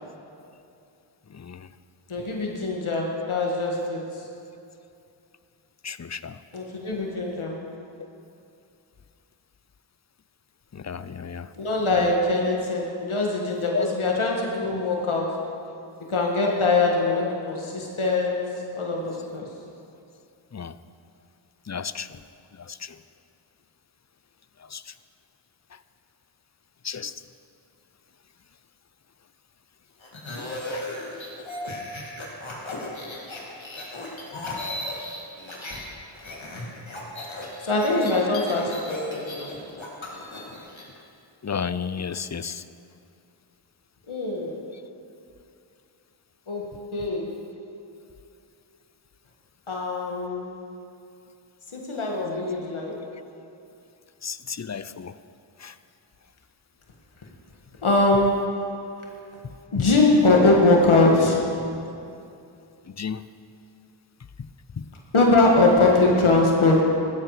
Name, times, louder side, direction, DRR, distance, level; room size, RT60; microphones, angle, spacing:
voice 1, 1.3-1.7 5.8-6.4 10.7-11.5 13.7-13.9 20.5-20.8 21.7-22.2 22.5-23.0 24.6-24.9 25.7-25.8 26.8-27.2 30.7-30.9 41.4-42.6 44.7-44.8 47.1-47.2 54.2-55.2 55.6-55.8 59.4-59.9 62.9-63.2 64.4-64.5 64.8-64.9, left 6 dB, 35° left, 14 dB, 0.5 m, -33 dB
voice 2, 2.1-4.0 6.5-7.6 11.6-15.4 16.1-18.4 18.8-19.5 37.6-39.5 44.1-44.5 46.5-47.3 49.7-50.5 51.7-53.0 57.8-58.5 59.7-61.5 65.1-66.8, left 2 dB, 85° left, -1 dB, 1.9 m, -22 dB
sound 1, 30.0-35.8 36.1-40.8, left 1 dB, 70° left, 2.6 m, -36 dB
16.0 x 12.5 x 4.9 m, 2.6 s
wide cardioid pair, 50°, 48 cm